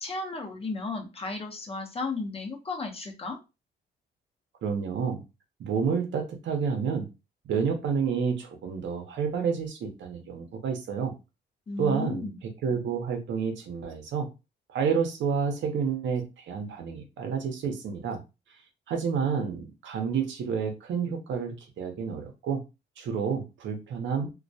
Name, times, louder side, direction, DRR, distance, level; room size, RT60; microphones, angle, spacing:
voice 1, 0.0-3.4 11.7-12.3, left 3 dB, 30° left, 2 dB, 0.7 m, -34 dB
voice 2, 4.6-5.2 5.6-7.1 7.4-11.2 11.8-14.3 14.7-18.2 18.9-22.6 23.0-24.3, right 6 dB, 70° right, 3 dB, 0.7 m, -29 dB
2.2 x 2.1 x 2.6 m, 0.27 s
cardioid pair, 90°, 20 cm